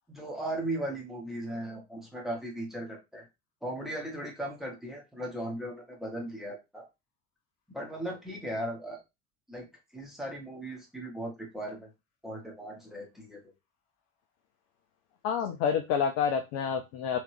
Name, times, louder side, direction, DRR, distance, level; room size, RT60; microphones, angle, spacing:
voice 1, 0.1-3.3 3.6-6.8 7.7-9.0 9.5-9.7 9.9-11.9 12.2-13.4, right 1 dB, ahead, -1 dB, 1.3 m, -37 dB
voice 2, 15.2-17.2, left 7 dB, 35° left, 6 dB, 0.5 m, -28 dB
3.2 x 3.2 x 3.1 m, 0.23 s
figure-of-eight pair, 75°, 44 cm